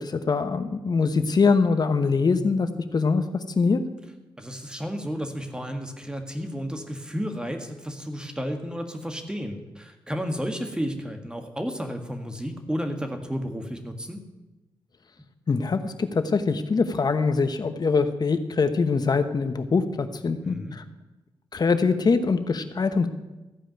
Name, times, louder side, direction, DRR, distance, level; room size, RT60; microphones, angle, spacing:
voice 1, 0.0-3.2 3.6-3.8 15.5-20.8 21.5-23.1, left 4 dB, 50° left, 9 dB, 1.1 m, -23 dB
voice 2, 4.4-14.2 20.4-20.8, equal, 10° right, 5 dB, 1.7 m, -32 dB
14.5 x 5.1 x 9.2 m, 1.1 s
cardioid pair, 70°, 9 cm